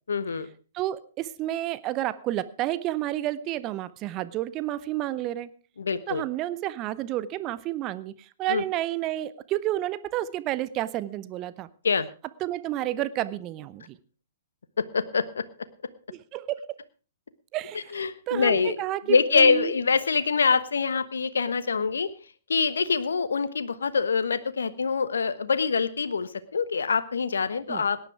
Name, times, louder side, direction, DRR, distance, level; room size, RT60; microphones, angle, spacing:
voice 1, 0.1-0.5 5.8-6.2 8.5-8.6 11.8-12.1 14.9-15.4 17.9-18.8 19.1-22.1 22.5-28.0, left 5 dB, 75° left, 14 dB, 1.2 m, -25 dB
voice 2, 0.7-5.5 6.1-11.7 12.4-14.0 16.1-16.7 17.5-19.7 27.7-27.9, right 14 dB, 30° right, 16 dB, 0.8 m, -30 dB
18.0 x 10.5 x 4.7 m, 0.37 s
figure-of-eight pair, 120°, 0 cm